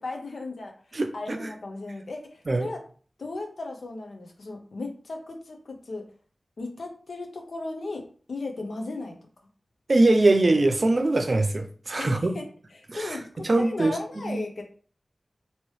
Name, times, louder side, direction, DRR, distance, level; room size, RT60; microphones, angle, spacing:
voice 1, 0.0-2.8 3.2-6.0 6.6-8.0 8.3-9.1 12.0-12.4 12.7-14.6, left 2 dB, 80° left, 3 dB, 0.7 m, -36 dB
voice 2, 0.9-1.5 2.5-2.7 9.9-12.4 12.9-13.2 13.4-14.0 14.2-14.4, right 2 dB, 55° right, 7 dB, 0.5 m, -22 dB
3.0 x 2.9 x 3.1 m, 0.44 s
wide cardioid pair, 50°, 0 cm